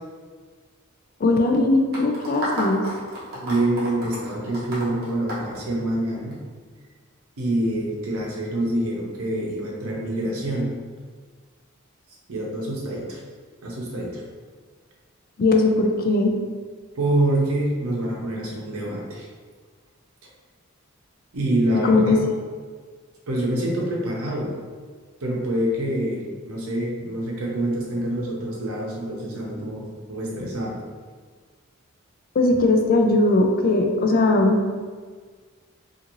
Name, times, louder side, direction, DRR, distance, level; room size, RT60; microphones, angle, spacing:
voice 1, 1.2-2.8 15.4-16.3 21.8-22.2 32.4-34.7, left 2 dB, 45° left, 3 dB, 0.3 m, -19 dB
sound 1, 1.9-6.3, equal, 45° right, 0.9 m, -32 dB
voice 2, 3.3-6.4 7.4-10.7 12.3-13.2 13.6-14.2 16.9-19.3 21.3-22.2 23.3-24.5 25.2-30.8, right 1 dB, 80° right, -3 dB, 0.7 m, -26 dB
2.6 x 2.5 x 2.9 m, 1.5 s
head